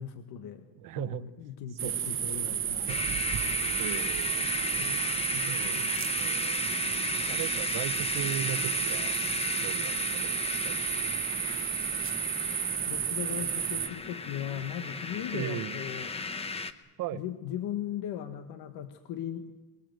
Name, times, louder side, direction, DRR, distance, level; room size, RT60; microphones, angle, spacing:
voice 1, 0.0-0.7 0.9-3.1 4.3-6.0 12.9-16.1 17.1-19.5, left 10 dB, 65° left, 8 dB, 1.5 m, -38 dB
voice 2, 0.8-1.3 1.8-2.5 2.8-3.0 3.8-4.4 5.4-9.2 9.6-11.1 15.3-15.8 17.0-17.2, right 12 dB, 50° right, 14 dB, 1.0 m, -38 dB
sound 1, 1.8-13.9, right 10 dB, 30° right, 1.1 m, -32 dB
sound 2, 2.9-16.7, left 4 dB, 15° left, 0.8 m, -35 dB
23.0 x 22.0 x 7.8 m, 1.2 s
cardioid pair, 170°, 41 cm